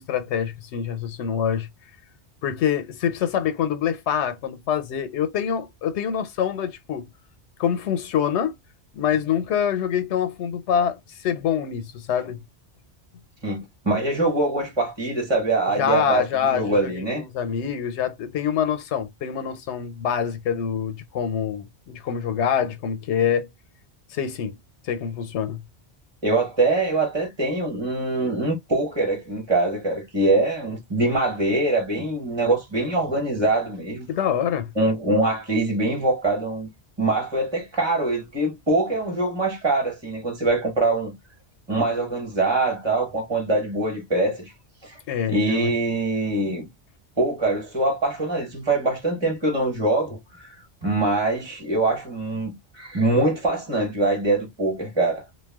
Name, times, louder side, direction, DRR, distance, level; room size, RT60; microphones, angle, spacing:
voice 1, 0.0-1.7 2.4-7.0 7.6-8.6 8.9-12.4 15.7-23.5 24.1-24.5 24.8-25.6 34.1-34.7 45.1-45.7, left 8 dB, 90° left, 0.9 m, -25 dB
voice 2, 13.8-17.2 26.2-34.1 34.8-36.7 37.0-41.1 41.7-44.5 44.8-45.0 45.3-46.7 47.2-50.6 50.8-55.2, right 2 dB, 25° right, 1.0 m, -23 dB
2.3 x 2.2 x 3.4 m
omnidirectional pair, 1.1 m